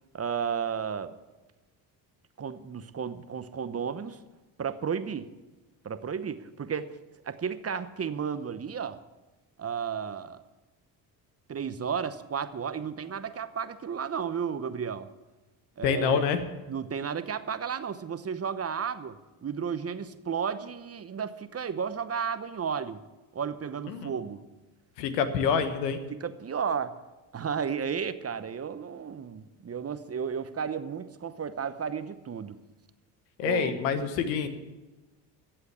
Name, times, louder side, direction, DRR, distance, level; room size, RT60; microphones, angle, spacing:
voice 1, 0.1-1.1 2.4-4.2 4.6-5.3 5.8-7.0 7.2-9.0 9.6-10.4 11.5-15.1 15.8-16.3 16.7-23.0 23.3-24.4 26.1-27.0 27.3-32.6 33.4-33.8, right 7 dB, 30° right, 12 dB, 0.9 m, -33 dB
voice 2, 15.8-16.4 23.9-24.1 25.0-26.0 33.4-34.5, left 6 dB, 85° left, 9 dB, 1.3 m, -26 dB
14.5 x 7.9 x 8.0 m, 1.1 s
hypercardioid pair, 65°, 49 cm